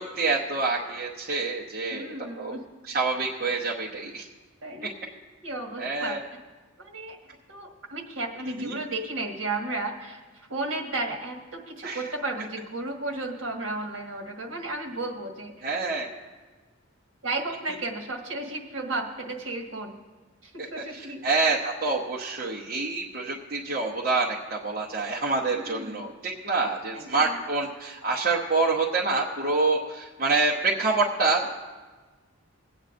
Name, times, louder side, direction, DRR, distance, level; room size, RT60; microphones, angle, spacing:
voice 1, 0.0-2.6 2.9-4.2 5.8-6.2 8.6-8.8 11.8-12.0 15.6-16.1 20.8-31.6, right 3 dB, 40° right, -4 dB, 0.9 m, -27 dB
voice 2, 1.9-2.6 4.6-5.0 5.4-6.2 6.8-7.2 7.5-15.5 17.2-20.0 20.4-21.2 25.4-26.1 26.9-27.4, right 2 dB, 60° right, 1 dB, 1.6 m, -34 dB
25.0 x 8.9 x 2.6 m, 1.3 s
head